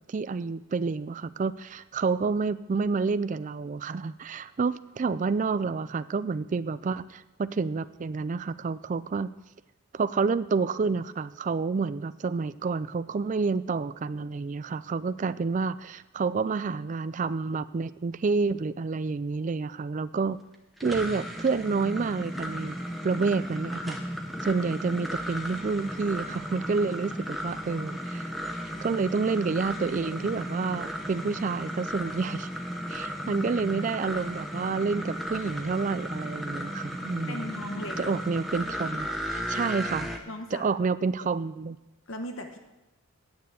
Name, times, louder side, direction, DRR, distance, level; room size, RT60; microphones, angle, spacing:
voice 1, 0.1-9.3 9.9-20.4 20.8-22.8 23.0-24.0 24.4-28.3 28.8-32.5 32.9-37.5 38.0-40.1 40.5-41.8, right 4 dB, 35° right, 15 dB, 0.3 m, -29 dB
sound 1, 20.5-40.2, equal, ahead, 0.9 m, -35 dB
voice 2, 37.3-38.2 40.3-40.7 42.1-42.6, left 1 dB, 65° left, 5 dB, 1.0 m, -38 dB
9.4 x 6.8 x 8.3 m, 1.0 s
head